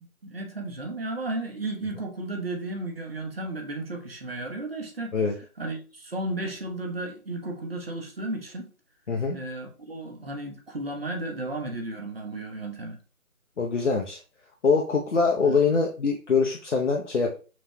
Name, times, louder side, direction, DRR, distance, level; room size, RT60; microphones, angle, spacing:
voice 1, 0.2-5.2 5.6-8.7 9.3-13.0 15.4-15.6, right 2 dB, 45° right, 0.9 m, -34 dB
voice 2, 9.1-9.4 13.6-14.2 14.6-17.4, left 4 dB, 55° left, 0.7 m, -23 dB
5.9 x 2.3 x 2.9 m
figure-of-eight pair, 165°, 43 cm